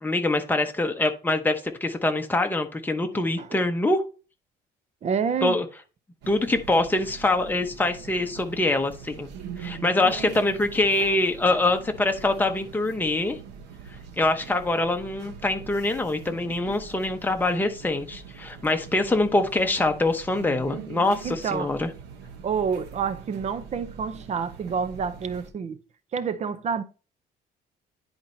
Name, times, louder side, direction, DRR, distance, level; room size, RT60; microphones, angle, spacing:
voice 1, 0.0-4.0 5.4-5.7 6.3-9.3 9.6-13.4 14.2-21.9, left 2 dB, 10° left, 1.0 m, -24 dB
voice 2, 3.1-3.6 5.0-5.6 11.5-11.6 21.2-21.7 22.4-25.8 26.1-26.8, right 6 dB, 40° right, 0.7 m, -28 dB
sound 1, 6.2-25.5, right 7 dB, 90° right, 1.0 m, -43 dB
10.0 x 4.4 x 2.7 m
cardioid pair, 110°, 17 cm